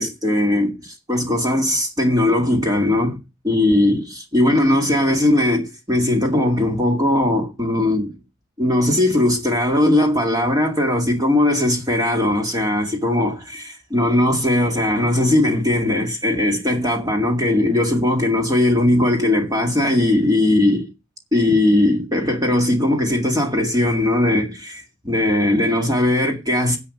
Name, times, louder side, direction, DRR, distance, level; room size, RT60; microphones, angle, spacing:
voice 1, 0.0-3.2 3.4-8.2 8.6-20.9 21.3-26.8, left 1 dB, 15° right, 2.1 m, -19 dB
10.5 x 5.9 x 8.5 m
head